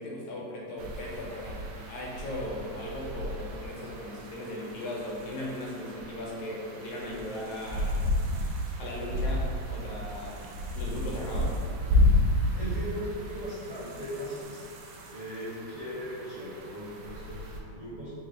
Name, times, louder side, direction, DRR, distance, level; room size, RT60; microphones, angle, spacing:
voice 1, 0.0-8.0 8.8-10.4 10.8-11.6, left 1 dB, 75° left, -3 dB, 1.9 m, -37 dB
sound 1, 0.8-17.6, left 1 dB, 80° right, 1.8 m, -32 dB
voice 2, 12.2-14.6 15.1-18.1, equal, 65° right, -13 dB, 1.0 m, -38 dB
4.8 x 2.4 x 3.7 m, 2.5 s
omnidirectional pair, 3.4 m